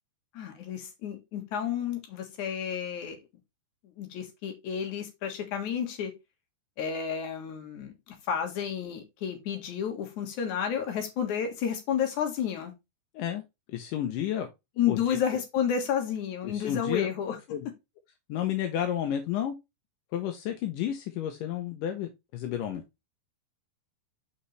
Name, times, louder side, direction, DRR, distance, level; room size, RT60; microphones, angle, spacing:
voice 1, 0.3-3.2 3.8-6.1 6.8-12.7 14.8-17.6, left 8 dB, 55° left, 2.6 m, -31 dB
voice 2, 13.7-14.5 14.9-15.0 16.4-17.1 17.5-17.7 18.3-19.6 20.1-22.8, left 10 dB, 75° left, 2.0 m, -31 dB
6.2 x 5.6 x 3.2 m
omnidirectional pair, 4.6 m